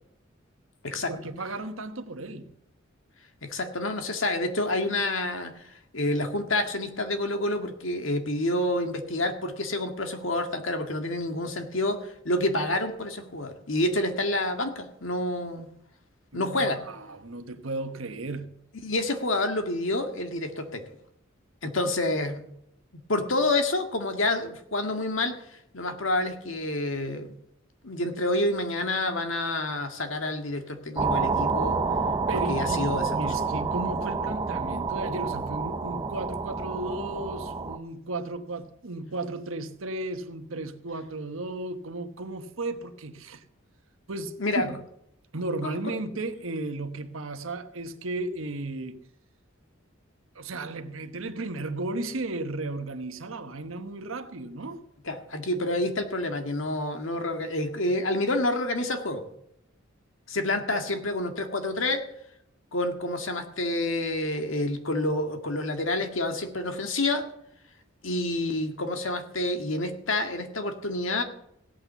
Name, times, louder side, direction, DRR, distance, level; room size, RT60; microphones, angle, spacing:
voice 1, 1.1-2.5 16.3-18.6 32.3-43.4 44.1-44.8 45.3-49.0 50.3-54.8, right 2 dB, 80° right, 1.2 m, -34 dB
voice 2, 3.4-5.5 5.9-15.7 16.3-16.8 18.8-20.8 21.6-22.4 23.1-25.4 25.7-27.3 27.8-31.8 32.3-33.1 44.4-44.7 45.6-45.8 55.1-59.2 60.3-62.0 62.7-67.3 68.0-71.2, left 2 dB, 70° left, 1.9 m, -28 dB
sound 1, 31.0-37.8, right 4 dB, 20° right, 0.8 m, -28 dB
16.5 x 8.9 x 6.9 m
head